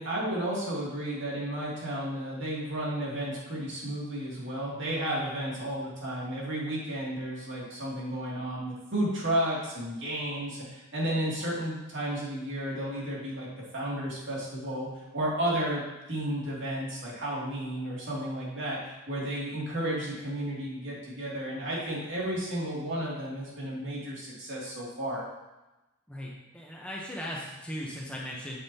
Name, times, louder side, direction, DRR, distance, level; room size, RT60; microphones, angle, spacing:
voice 1, 0.0-13.5 13.7-15.8 16.1-25.2, right 1 dB, 55° right, -5 dB, 2.5 m, -32 dB
voice 2, 26.1-28.6, equal, 5° left, -3 dB, 0.8 m, -38 dB
8.5 x 7.4 x 2.8 m, 1.0 s
head